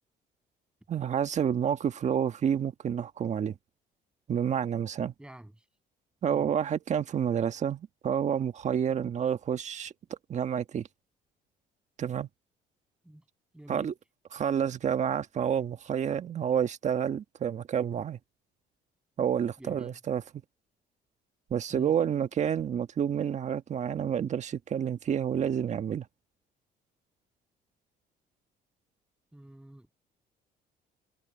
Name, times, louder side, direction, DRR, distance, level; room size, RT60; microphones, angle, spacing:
voice 1, 0.9-3.5 4.3-5.1 6.2-9.9 10.3-10.9 12.0-12.3 13.7-13.9 14.3-18.2 19.2-20.2 21.5-26.1, right 8 dB, 45° right, 1.6 m, -29 dB
voice 2, 5.2-5.6 6.2-6.5 13.0-13.2 13.5-13.9 19.6-20.0 21.7-21.9 29.3-29.9, right 1 dB, 5° right, 7.5 m, -48 dB
cardioid pair, 110°, 17 cm